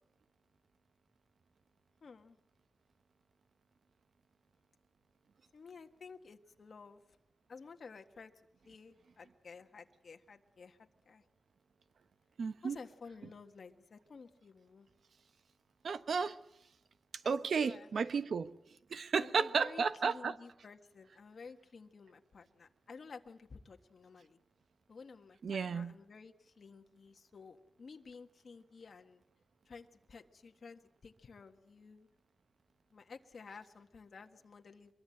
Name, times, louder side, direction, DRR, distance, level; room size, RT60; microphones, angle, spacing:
voice 1, 2.0-2.4 5.5-7.0 7.5-11.2 12.6-14.9 17.2-17.9 19.2-24.4 24.9-29.2 29.6-32.1 32.9-34.9, left 5 dB, 65° left, 1.7 m, -53 dB
voice 2, 12.4-12.8 15.8-16.4 17.2-18.5 18.9-20.4 25.4-25.9, right 5 dB, 85° right, 1.1 m, -33 dB
24.0 x 23.0 x 7.9 m
wide cardioid pair, 135°, 0 cm